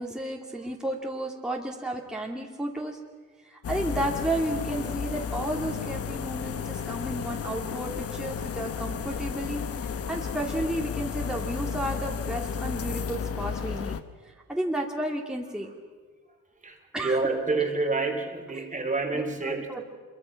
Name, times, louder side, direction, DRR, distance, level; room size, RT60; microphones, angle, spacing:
voice 1, 0.0-3.0 3.5-9.6 9.9-14.0 14.2-15.7 16.9-17.2 19.1-19.8, right 1 dB, ahead, -1 dB, 2.7 m, -32 dB
sound 1, 3.6-14.0, left 6 dB, 50° left, 1.2 m, -33 dB
voice 2, 16.6-19.8, right 3 dB, 25° right, 5 dB, 3.1 m, -28 dB
26.0 x 23.0 x 6.0 m, 1.5 s
cardioid pair, 90°, 30 cm